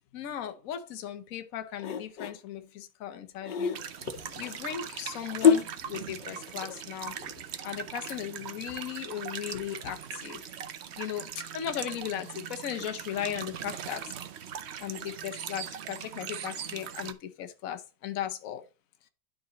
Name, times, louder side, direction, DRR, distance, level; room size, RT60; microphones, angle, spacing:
voice 1, 0.1-3.8 4.3-7.3 7.6-10.5 11.0-14.0 14.8-18.6, left 10 dB, 55° left, 1.2 m, -37 dB
sound 1, 1.8-2.4 3.4-8.2 8.6-8.7, left 7 dB, 85° left, 1.6 m, -28 dB
sound 2, 3.7-17.1, right 8 dB, 65° right, 0.6 m, -40 dB
11.0 x 3.9 x 4.0 m
omnidirectional pair, 1.9 m